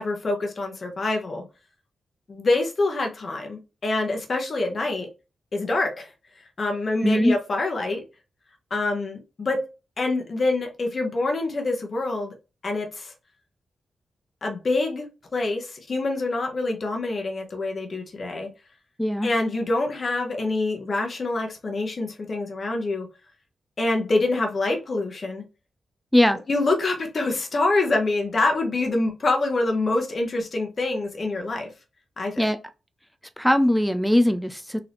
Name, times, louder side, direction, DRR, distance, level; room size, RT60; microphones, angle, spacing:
voice 1, 0.0-1.4 2.3-5.1 5.5-8.0 8.7-9.6 10.0-12.3 12.6-13.1 14.4-15.1 15.3-18.5 19.2-23.1 23.8-25.4 26.5-31.7 32.2-32.4, left 2 dB, 50° left, 1.0 m, -26 dB
voice 2, 7.0-7.4 19.0-19.3 26.1-26.4 32.4-32.6 33.4-34.8, left 1 dB, ahead, 0.4 m, -20 dB
3.9 x 2.8 x 3.4 m
cardioid pair, 75°, 0 cm